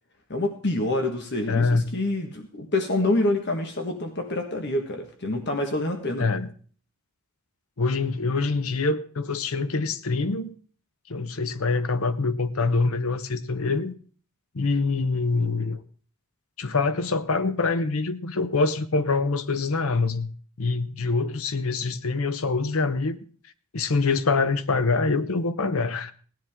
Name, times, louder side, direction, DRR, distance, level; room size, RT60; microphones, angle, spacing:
voice 1, 0.3-6.3, left 2 dB, 50° left, 4 dB, 1.4 m, -27 dB
voice 2, 1.5-1.8 6.2-6.5 7.8-10.5 11.1-13.9 14.5-15.8 16.6-20.3 20.6-23.2 23.7-26.1, left 3 dB, 75° left, 11 dB, 0.8 m, -25 dB
17.0 x 10.5 x 3.6 m, 0.43 s
head